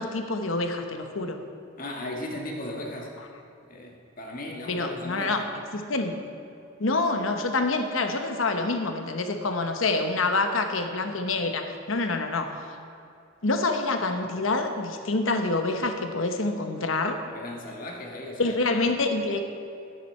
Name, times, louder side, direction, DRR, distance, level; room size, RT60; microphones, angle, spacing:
voice 1, 0.0-1.4 4.7-5.4 5.7-6.2 6.8-12.7 13.4-17.2 18.4-19.4, left 3 dB, 80° left, 6 dB, 1.0 m, -27 dB
voice 2, 1.8-3.1 3.7-5.4 17.3-18.6, left 1 dB, 45° left, 0 dB, 1.4 m, -36 dB
12.0 x 9.9 x 4.3 m, 2.6 s
head